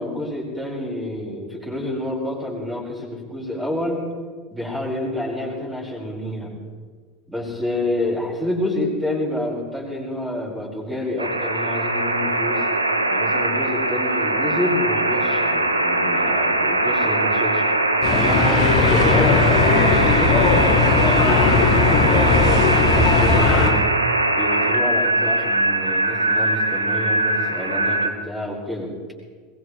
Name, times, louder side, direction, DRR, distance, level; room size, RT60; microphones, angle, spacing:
voice 1, 0.0-4.0 4.5-6.6 7.3-12.7 13.1-17.6 18.1-20.6 20.9-23.9 24.4-28.9, left 1 dB, 10° right, -3 dB, 5.3 m, -28 dB
sound 1, 11.2-28.1, right 2 dB, 85° right, 0.9 m, -21 dB
sound 2, 18.0-23.7, left 4 dB, 45° left, 2.4 m, -18 dB
21.5 x 19.0 x 3.3 m, 1.5 s
figure-of-eight pair, 75°, 0 cm